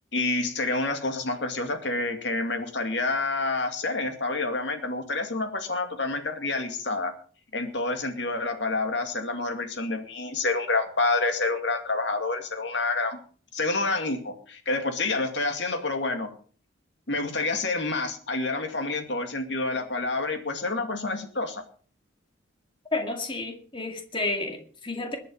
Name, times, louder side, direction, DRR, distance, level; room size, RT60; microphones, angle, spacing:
voice 1, 0.1-7.1 7.5-13.2 13.5-16.3 17.1-21.6, left 3 dB, 60° left, 6 dB, 2.4 m, -28 dB
voice 2, 22.9-25.2, left 2 dB, 25° left, 4 dB, 2.3 m, -31 dB
21.0 x 8.4 x 5.5 m, 0.43 s
head